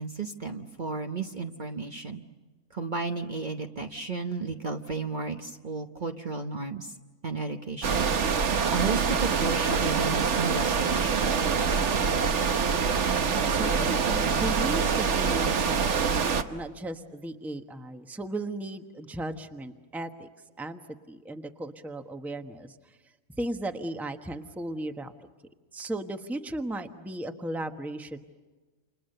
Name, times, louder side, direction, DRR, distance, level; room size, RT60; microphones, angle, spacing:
voice 1, 0.0-2.2 2.7-7.0 7.2-8.0 8.7-11.3, right 4 dB, 40° right, 4 dB, 1.1 m, -33 dB
sound 1, 7.8-16.4, right 6 dB, 60° right, 1.3 m, -25 dB
voice 2, 13.4-20.3 20.6-20.8 21.1-23.0 23.4-25.3 25.7-28.2, right 1 dB, ahead, 6 dB, 1.1 m, -36 dB
29.5 x 28.5 x 6.7 m, 1.3 s
omnidirectional pair, 1.4 m